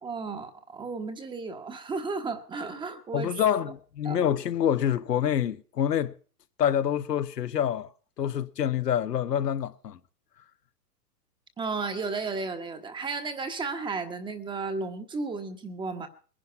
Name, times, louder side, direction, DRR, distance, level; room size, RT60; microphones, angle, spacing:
voice 1, 0.0-3.3 4.0-4.2 11.6-16.1, right 4 dB, 10° right, 1.1 m, -33 dB
voice 2, 3.1-6.1 6.6-7.9 8.2-10.0, left 9 dB, 90° left, 1.3 m, -26 dB
20.5 x 10.5 x 5.7 m
hypercardioid pair, 145°, 47 cm